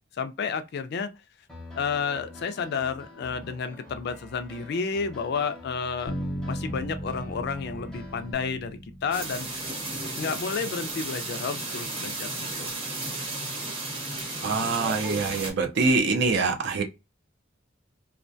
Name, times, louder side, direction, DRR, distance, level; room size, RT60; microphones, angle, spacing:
voice 1, 0.2-1.1 1.7-6.2 6.5-9.6 10.1-12.7, left 5 dB, 55° left, 0.4 m, -31 dB
Piano, 1.5-8.3, left 2 dB, 5° left, 0.7 m, -46 dB
Bass guitar, 6.1-10.1, equal, 90° left, 0.7 m, -36 dB
sound 1, 9.1-15.5, right 2 dB, 25° right, 0.8 m, -34 dB
voice 2, 14.4-16.8, right 4 dB, 60° right, 0.5 m, -24 dB
2.3 x 2.1 x 2.5 m
head